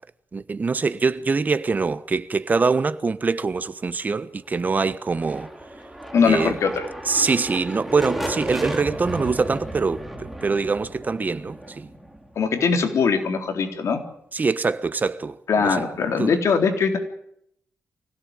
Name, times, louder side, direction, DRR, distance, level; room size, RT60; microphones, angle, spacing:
voice 1, 0.3-5.5 6.2-6.6 7.1-11.9 14.3-15.8 16.2-16.3, right 4 dB, 35° right, 1.3 m, -24 dB
sound 1, 5.0-12.8, right 1 dB, ahead, 3.8 m, -34 dB
voice 2, 6.1-6.9 12.4-14.0 15.5-17.0, left 5 dB, 65° left, 3.9 m, -21 dB
25.0 x 17.0 x 9.0 m
cardioid pair, 110°, 5 cm